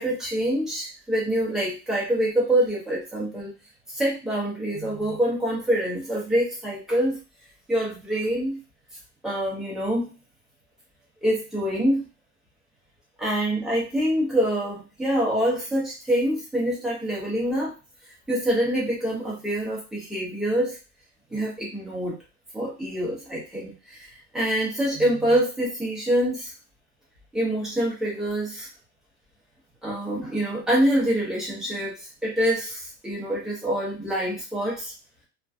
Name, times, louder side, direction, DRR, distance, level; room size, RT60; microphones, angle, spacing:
voice 1, 0.0-3.5 3.9-7.2 7.7-8.6 9.2-10.0 11.2-12.0 13.2-17.7 18.3-20.8 21.3-22.2 22.5-26.5 27.3-28.7 29.8-34.9, right 1 dB, ahead, -6 dB, 0.4 m, -25 dB
2.5 x 2.2 x 2.3 m, 0.31 s
supercardioid pair, 160°, 40 cm